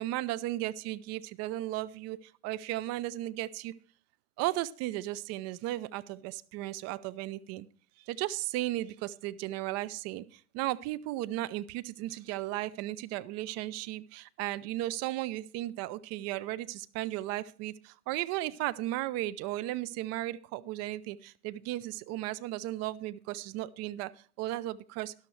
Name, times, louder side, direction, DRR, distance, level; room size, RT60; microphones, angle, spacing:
voice 1, 0.0-3.7 4.4-7.7 8.0-25.1, right 16 dB, 35° right, 16 dB, 0.7 m, -35 dB
12.5 x 12.0 x 3.3 m, 0.41 s
figure-of-eight pair, 90°, 45 cm